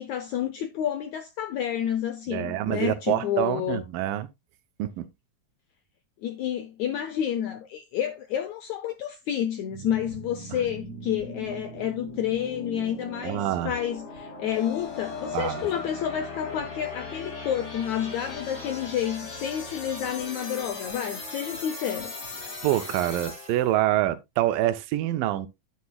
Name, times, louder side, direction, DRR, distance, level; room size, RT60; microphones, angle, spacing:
voice 1, 0.0-3.8 6.2-22.1, left 10 dB, 80° left, 1.6 m, -30 dB
voice 2, 2.3-4.3 4.8-5.1 13.2-13.7 15.3-15.7 22.6-25.5, right 14 dB, 80° right, 2.3 m, -26 dB
sound 1, 9.7-23.7, left 2 dB, 35° left, 5.1 m, -40 dB
sound 2, 14.5-20.1, left 7 dB, 60° left, 3.8 m, -41 dB
11.5 x 8.3 x 2.3 m
omnidirectional pair, 4.2 m